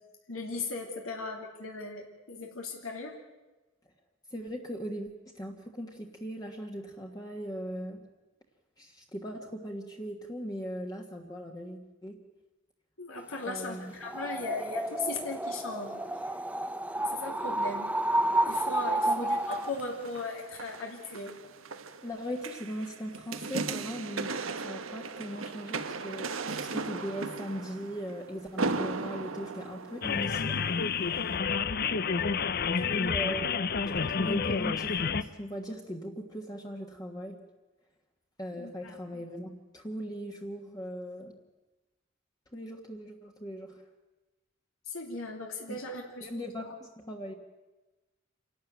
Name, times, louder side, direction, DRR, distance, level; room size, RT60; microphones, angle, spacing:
voice 1, 0.3-3.2 13.0-16.0 17.1-18.0 18.5-21.3 32.8-33.1 38.6-39.0 44.9-46.3 46.6-46.7, left 3 dB, 90° left, 1 dB, 2.9 m, -38 dB
voice 2, 4.3-5.1 5.3-8.0 8.8-12.2 13.4-13.9 19.1-19.3 22.0-30.6 32.7-33.6 33.8-37.4 38.4-41.4 42.5-43.8 45.7-45.8 46.2-47.3, equal, 20° left, 1 dB, 1.4 m, -39 dB
sound 1, 14.0-19.8, right 1 dB, 5° right, 0.7 m, -30 dB
sound 2, 19.4-30.6 31.2-31.3, right 3 dB, 85° right, 1.1 m, -37 dB
sound 3, 30.0-35.2, left 5 dB, 50° left, 0.6 m, -29 dB
27.5 x 12.0 x 9.2 m, 1.1 s
head